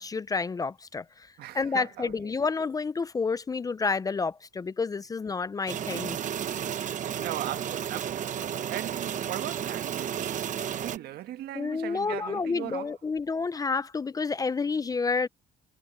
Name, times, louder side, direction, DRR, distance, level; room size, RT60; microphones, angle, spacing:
voice 1, 0.0-6.2 11.5-15.3, left 4 dB, 20° left, 0.5 m, -30 dB
voice 2, 1.4-2.3 6.8-12.9, right 13 dB, 70° right, 1.4 m, -39 dB
sound 1, 5.7-11.0, right 9 dB, 45° right, 1.0 m, -32 dB
cardioid pair, 110°, 17 cm